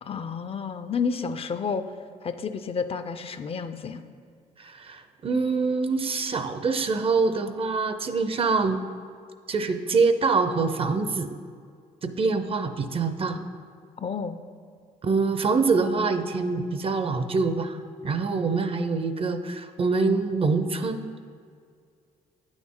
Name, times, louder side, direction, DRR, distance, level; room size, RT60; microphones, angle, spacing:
voice 1, 0.0-1.8 2.2-4.0 14.0-14.4, left 5 dB, 40° left, 10 dB, 0.4 m, -30 dB
voice 2, 4.6-8.8 9.5-11.3 12.0-13.5 15.0-17.8 18.0-21.1, right 4 dB, 35° right, 9 dB, 0.6 m, -25 dB
9.1 x 6.2 x 3.7 m, 2.2 s
cardioid pair, 85°, 16 cm